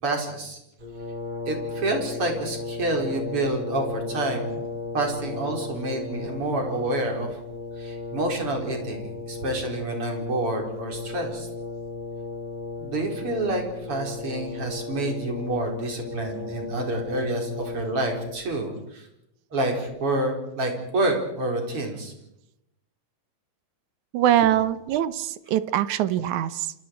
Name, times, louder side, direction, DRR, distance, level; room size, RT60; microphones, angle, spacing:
voice 1, 0.0-0.6 1.5-4.7 4.9-7.4 7.8-11.5 12.8-19.1 19.5-22.1, right 2 dB, 35° right, 2 dB, 5.3 m, -28 dB
Brass instrument, 0.8-18.6, left 3 dB, 15° right, 3.9 m, -35 dB
voice 2, 24.1-26.7, right 11 dB, 70° right, 13 dB, 2.1 m, -23 dB
29.0 x 27.0 x 4.7 m, 0.83 s
omnidirectional pair, 4.2 m